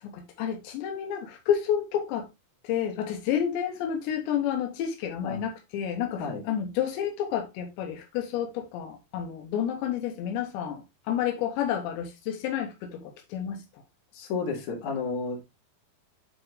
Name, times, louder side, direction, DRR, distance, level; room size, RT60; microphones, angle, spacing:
voice 1, 0.0-2.3 2.6-13.6, left 9 dB, 80° left, 3.2 m, -30 dB
voice 2, 14.1-15.4, left 4 dB, 50° left, 2.9 m, -31 dB
9.5 x 4.5 x 3.2 m
omnidirectional pair, 5.2 m